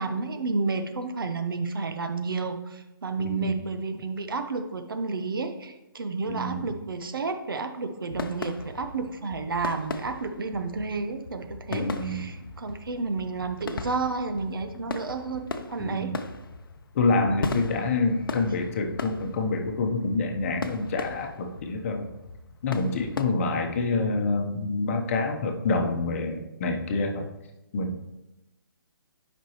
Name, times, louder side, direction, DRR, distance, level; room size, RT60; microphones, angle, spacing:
voice 1, 0.0-16.1 17.3-17.6 23.3-23.5, right 4 dB, 65° right, 7 dB, 0.9 m, -31 dB
voice 2, 3.2-3.6 6.3-6.7 11.7-12.3 15.8-16.2 16.9-22.1 22.6-27.3 27.7-28.1, left 3 dB, 35° left, 3 dB, 0.9 m, -27 dB
sound 1, 8.1-23.2, left 4 dB, 70° left, 0.7 m, -38 dB
8.4 x 5.3 x 3.0 m, 0.94 s
figure-of-eight pair, 145°, 12 cm